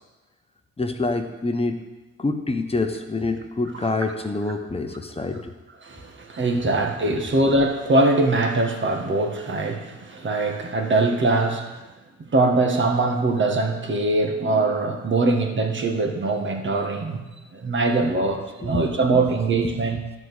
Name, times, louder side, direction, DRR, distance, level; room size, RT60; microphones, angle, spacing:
voice 1, 0.8-1.8 2.2-5.5 18.6-18.8 19.1-19.2, left 3 dB, 20° left, 6 dB, 1.1 m, -26 dB
voice 2, 5.8-11.8 12.2-17.3 17.5-20.0, right 2 dB, 40° right, 4 dB, 1.6 m, -22 dB
12.0 x 4.9 x 8.1 m, 1.2 s
cardioid pair, 90°, 30 cm